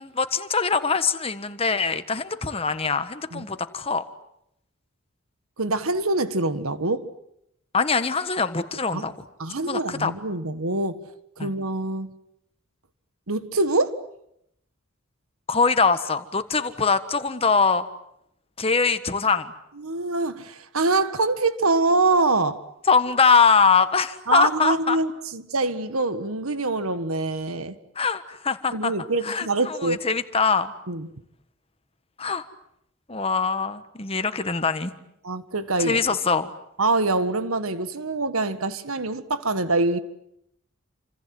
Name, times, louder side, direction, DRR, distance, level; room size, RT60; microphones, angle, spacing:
voice 1, 0.0-4.0 7.7-9.1 9.6-10.1 11.4-11.5 15.5-17.9 18.6-19.5 22.9-25.0 27.9-28.9 29.2-30.7 32.2-32.4 33.1-34.9 35.8-36.5, left 5 dB, 25° left, 1.4 m, -23 dB
voice 2, 5.6-7.1 8.9-9.1 9.4-11.0 11.4-12.1 13.3-14.0 19.8-22.6 24.3-27.8 28.7-30.0 30.9-31.1 35.2-36.0 36.8-40.0, right 3 dB, 85° right, 1.7 m, -24 dB
28.5 x 26.5 x 7.8 m
head